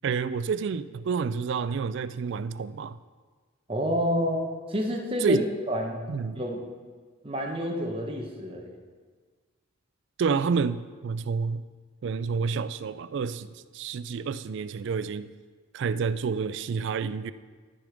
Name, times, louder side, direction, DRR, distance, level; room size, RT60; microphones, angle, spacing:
voice 1, 0.0-3.0 5.2-5.4 6.1-6.4 10.2-11.6 12.0-15.3 15.7-17.3, right 5 dB, 55° right, 15 dB, 0.3 m, -29 dB
voice 2, 3.7-4.4 4.7-6.0 6.4-6.6 7.2-8.7, equal, 25° right, 1 dB, 1.0 m, -28 dB
12.5 x 5.0 x 5.1 m, 1.5 s
head